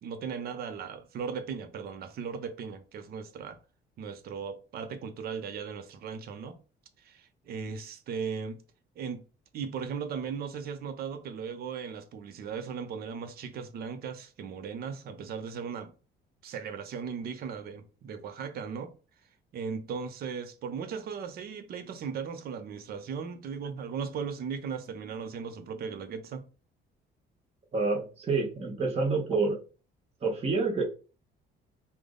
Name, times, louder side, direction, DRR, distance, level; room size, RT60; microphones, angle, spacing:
voice 1, 0.0-3.6 4.0-6.6 7.0-8.6 9.0-9.2 9.5-15.9 16.4-18.9 19.5-26.4, right 6 dB, 55° right, 0.6 m, -37 dB
voice 2, 27.7-29.6 30.2-30.8, right 3 dB, 35° right, 1.0 m, -28 dB
3.4 x 2.0 x 3.6 m
cardioid pair, 150°, 19 cm